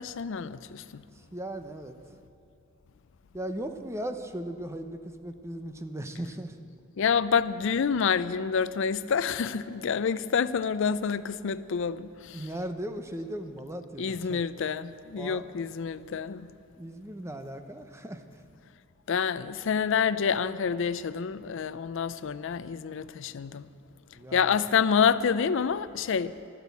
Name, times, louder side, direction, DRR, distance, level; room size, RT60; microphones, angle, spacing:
voice 1, 0.0-1.0 7.0-12.4 14.0-16.5 19.1-23.7 24.3-26.3, left 6 dB, 65° left, 0.4 m, -28 dB
voice 2, 1.1-1.9 3.3-6.6 12.3-14.4 15.2-15.4 16.8-18.2 24.1-24.7, right 1 dB, 15° right, 0.8 m, -37 dB
12.5 x 12.5 x 8.3 m
head